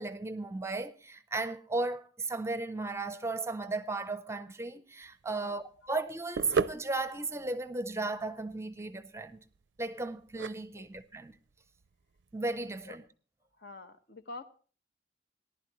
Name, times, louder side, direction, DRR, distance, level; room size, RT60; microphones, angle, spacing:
voice 1, 0.0-9.4 9.8-11.4 12.3-13.0, right 3 dB, 15° right, 0.6 m, -35 dB
sound 1, 5.0-12.9, right 5 dB, 85° right, 0.5 m, -38 dB
voice 2, 5.4-5.9 10.8-10.9 12.9-13.0 13.6-14.4, left 3 dB, 60° left, 1.2 m, -47 dB
18.5 x 11.5 x 3.0 m
head